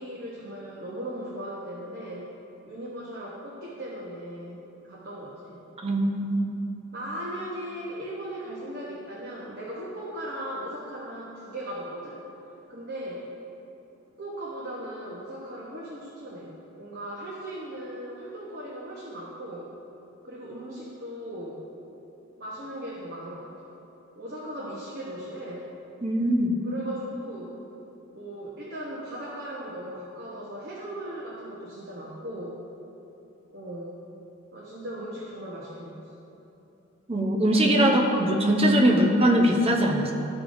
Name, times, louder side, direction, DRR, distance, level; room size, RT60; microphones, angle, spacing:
voice 1, 0.0-2.3 2.7-5.6 6.9-12.3 12.7-13.3 14.2-19.7 20.2-21.6 22.4-23.5 24.1-25.7 26.6-27.6 28.1-32.6 33.5-34.0 34.5-36.1 37.8-38.1 38.9-39.1, right 1 dB, 50° right, -6 dB, 1.0 m, -38 dB
voice 2, 5.8-6.5 26.0-26.6 37.1-38.0 38.3-40.1, right 1 dB, 30° right, 0 dB, 0.8 m, -21 dB
13.5 x 4.9 x 2.6 m, 3.0 s
head